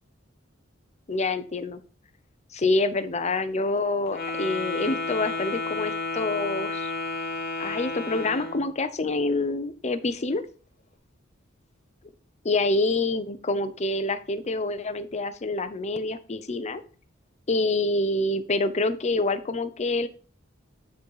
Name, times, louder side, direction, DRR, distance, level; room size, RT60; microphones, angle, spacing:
voice 1, 1.1-1.8 2.5-6.9 7.6-10.4 12.4-16.8 17.5-20.1, left 2 dB, 35° left, 11 dB, 0.7 m, -26 dB
Wind instrument woodwind instrument, 4.1-8.7, left 3 dB, 50° left, 2.3 m, -31 dB
9.3 x 4.0 x 4.7 m, 0.38 s
head